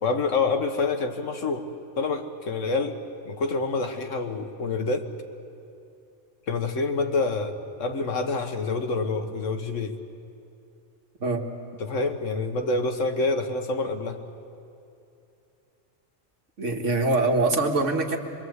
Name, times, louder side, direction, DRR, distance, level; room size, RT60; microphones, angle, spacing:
voice 1, 0.0-1.7 2.0-5.1 6.5-10.0 11.8-14.2, left 3 dB, 85° left, 6 dB, 1.7 m, -27 dB
voice 2, 16.6-18.2, right 3 dB, 80° right, 3 dB, 2.1 m, -23 dB
25.0 x 22.5 x 8.1 m, 2.6 s
omnidirectional pair, 1.3 m